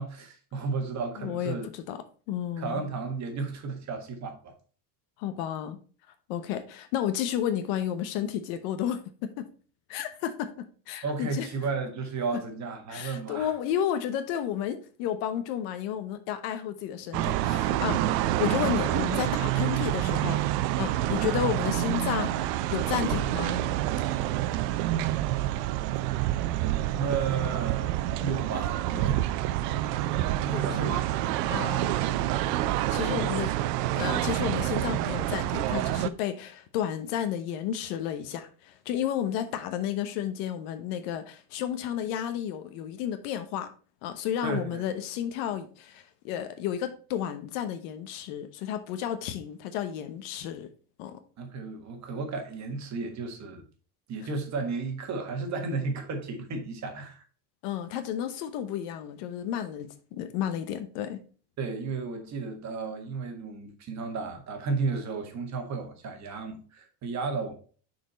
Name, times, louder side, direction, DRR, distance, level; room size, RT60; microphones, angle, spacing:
voice 1, 0.0-1.7 2.6-4.5 11.0-13.5 26.9-29.2 30.4-31.0 31.7-31.9 33.0-33.4 44.4-44.8 51.4-53.6 54.1-57.2 61.6-67.5, right 4 dB, 35° right, 1.5 m, -33 dB
voice 2, 1.2-2.8 5.2-5.8 6.3-9.4 9.9-11.5 12.9-18.0 18.4-20.4 20.8-23.6 30.5-31.0 31.5-32.0 32.9-33.5 33.9-43.7 44.0-50.7 51.0-51.2 57.6-61.2, left 10 dB, 70° left, 1.0 m, -32 dB
sound 1, 17.1-36.1, right 13 dB, 90° right, 0.7 m, -27 dB
6.2 x 4.5 x 4.1 m
cardioid pair, 145°, 47 cm